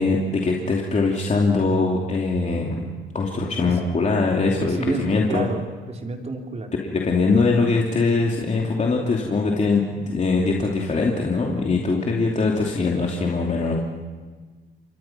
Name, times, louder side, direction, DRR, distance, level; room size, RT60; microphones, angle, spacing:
voice 1, 0.0-2.9 3.1-5.5 6.8-13.8, left 3 dB, 35° left, -1 dB, 2.9 m, -22 dB
voice 2, 4.4-5.6 5.9-6.7, right 2 dB, 35° right, 2 dB, 3.8 m, -29 dB
29.0 x 23.5 x 6.0 m, 1.4 s
cardioid pair, 90°, 20 cm